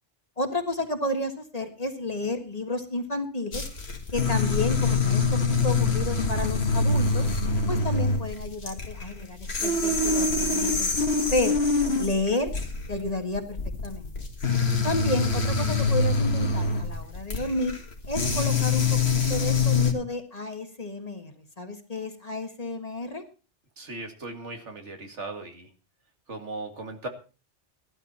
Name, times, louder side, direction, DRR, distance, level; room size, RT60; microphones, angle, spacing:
voice 1, 0.4-3.6 4.1-7.3 7.7-11.6 12.0-12.5 12.9-13.6 13.8-14.1 14.8-17.8 18.1-23.2, left 2 dB, 35° left, 6 dB, 1.7 m, -31 dB
sound 1, 3.5-19.9, left 3 dB, 65° left, 2.0 m, -25 dB
voice 2, 23.8-25.7 26.3-27.1, right 2 dB, 85° right, 5 dB, 2.5 m, -37 dB
15.0 x 12.0 x 4.3 m, 0.34 s
omnidirectional pair, 1.2 m